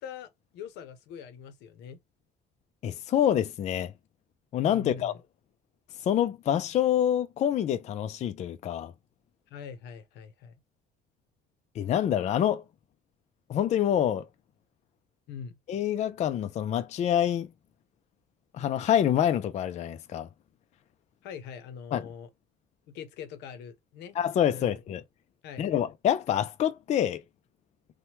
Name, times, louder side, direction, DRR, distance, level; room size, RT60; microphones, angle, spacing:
voice 1, 0.0-2.0 4.7-5.2 9.5-10.5 15.3-15.5 21.2-22.3 22.9-24.2 24.5-24.8 25.4-25.7, left 7 dB, 85° left, 0.7 m, -43 dB
voice 2, 2.8-3.9 4.5-5.2 6.0-8.9 11.8-12.6 13.5-14.3 15.7-17.5 18.5-20.3 21.9-22.1 24.2-25.0 25.6-27.2, left 10 dB, 45° left, 0.4 m, -26 dB
2.9 x 2.1 x 2.8 m
cardioid pair, 110°, 17 cm